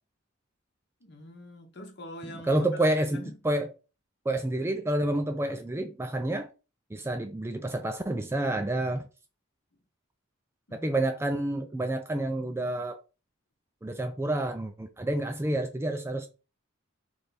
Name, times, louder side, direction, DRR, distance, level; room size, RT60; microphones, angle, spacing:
voice 1, 1.0-3.3 10.7-11.0, left 1 dB, 50° left, 1.0 m, -44 dB
voice 2, 2.2-3.7 4.3-6.5 6.9-9.1 10.7-13.0 13.8-16.3, right 1 dB, 10° right, 0.3 m, -29 dB
3.4 x 3.3 x 4.0 m
head